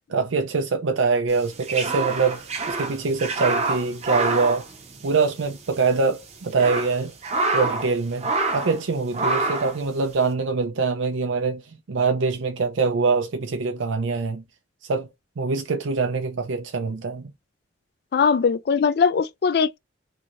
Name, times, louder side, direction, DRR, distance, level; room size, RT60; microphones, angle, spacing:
voice 1, 0.1-4.6 5.0-7.1 7.5-11.6 11.9-14.4 14.9-15.1 15.4-17.3, right 4 dB, 75° right, 0.5 m, -24 dB
sound 1, 1.4-5.5 5.7-5.8 6.3-7.9 8.2-8.8 9.1-9.8, right 3 dB, 35° right, 0.7 m, -26 dB
voice 2, 18.1-19.8, left 6 dB, 55° left, 0.3 m, -20 dB
3.0 x 2.7 x 2.4 m
head